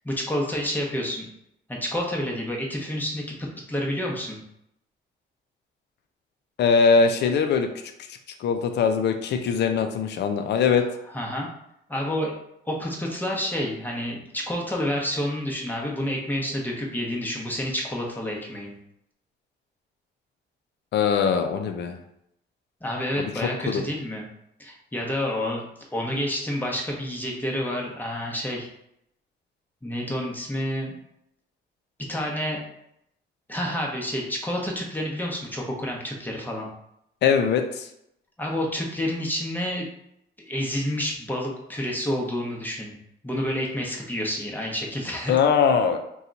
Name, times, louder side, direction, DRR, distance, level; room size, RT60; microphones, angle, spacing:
voice 1, 0.0-1.3 1.7-4.4 11.1-11.5 11.9-12.3 12.7-18.7 22.8-24.3 24.6-25.6 25.9-28.7 29.8-30.9 32.1-32.6 33.5-36.7 38.4-39.9 40.4-43.0 43.2-45.3, equal, 10° left, -2 dB, 0.8 m, -29 dB
voice 2, 6.6-7.7 8.1-10.8 20.9-22.0 23.2-23.3 23.7-23.8 37.2-37.9 45.3-46.0, left 6 dB, 60° left, 6 dB, 0.5 m, -21 dB
2.8 x 2.3 x 3.8 m, 0.78 s
cardioid pair, 90°, 20 cm